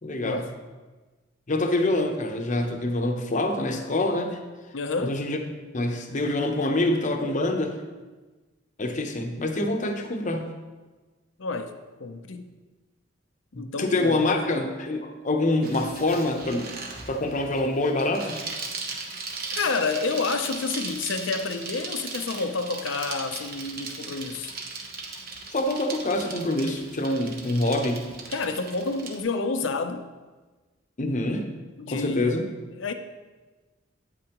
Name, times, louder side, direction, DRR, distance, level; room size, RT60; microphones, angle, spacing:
voice 1, 0.0-0.4 1.5-4.4 5.0-5.4 5.7-7.7 8.8-10.4 13.5-16.7 17.1-18.4 25.5-28.0 31.0-31.5 31.9-32.4, left 2 dB, 40° left, 0.8 m, -26 dB
voice 2, 4.7-5.2 11.4-11.7 12.0-12.5 13.5-14.5 19.5-24.5 28.3-30.1 31.8-32.3 32.8-32.9, left 4 dB, 70° left, 0.6 m, -29 dB
Bicycle, 15.6-29.2, right 4 dB, 50° right, 1.0 m, -38 dB
9.0 x 8.6 x 3.0 m
head